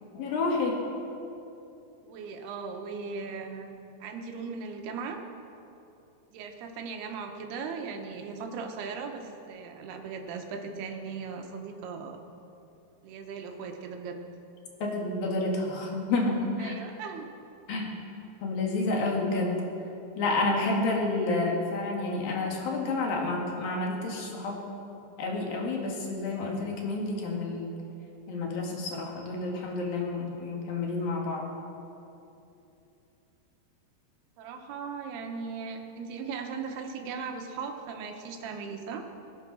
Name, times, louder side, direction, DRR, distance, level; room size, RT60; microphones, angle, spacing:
voice 1, 0.1-0.8 14.8-16.7 17.7-17.9 18.4-19.6 20.2-24.6 25.2-27.7 28.3-31.4, left 2 dB, 65° left, -1 dB, 3.6 m, -29 dB
voice 2, 2.0-3.7 4.0-5.2 6.3-12.2 13.0-14.2 16.6-17.3 34.4-39.1, right 5 dB, 75° right, 3 dB, 3.2 m, -38 dB
21.5 x 8.9 x 6.3 m, 2.8 s
omnidirectional pair, 4.6 m